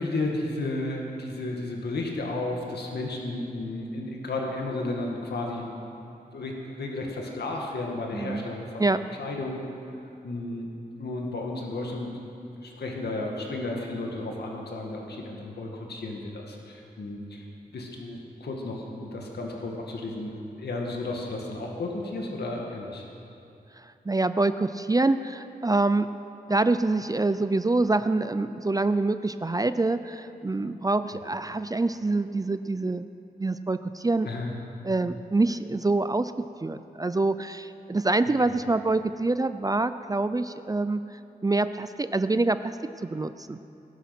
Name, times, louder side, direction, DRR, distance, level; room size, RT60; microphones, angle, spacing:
voice 1, 0.0-5.7 6.3-8.8 9.2-9.6 10.2-17.4 17.7-23.0 34.3-34.5, left 2 dB, 80° left, 0 dB, 2.1 m, -33 dB
voice 2, 8.1-8.4 8.8-9.0 23.8-26.1 26.5-33.1 33.4-34.3 34.8-36.3 36.6-42.8 43.0-43.6, right 2 dB, 20° right, 11 dB, 0.5 m, -26 dB
19.0 x 12.0 x 6.1 m, 2.8 s
wide cardioid pair, 80°, 17 cm